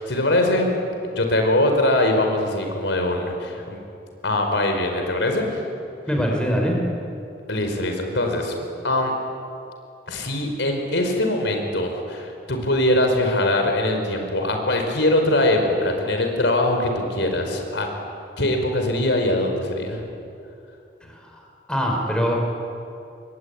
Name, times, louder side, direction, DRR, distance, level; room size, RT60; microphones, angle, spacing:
voice 1, 0.0-3.8 4.2-5.6 7.5-8.5 8.8-9.1 10.1-17.9 18.4-20.0, left 1 dB, 85° left, 4 dB, 4.9 m, -22 dB
voice 2, 6.1-6.8 21.1-21.4 21.7-22.4, equal, 5° left, 0 dB, 4.9 m, -23 dB
26.5 x 22.0 x 9.7 m, 2.6 s
head